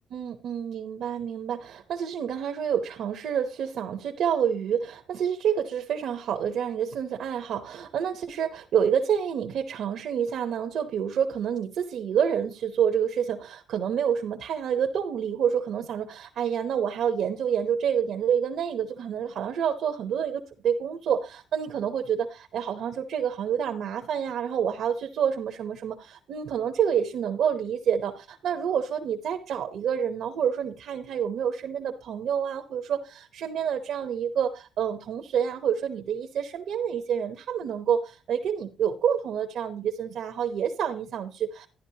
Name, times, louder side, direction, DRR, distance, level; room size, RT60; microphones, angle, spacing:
voice 1, 0.0-41.7, right 8 dB, 70° right, 4 dB, 0.9 m, -28 dB
11.5 x 10.5 x 2.8 m, 0.32 s
cardioid pair, 90°, 0 cm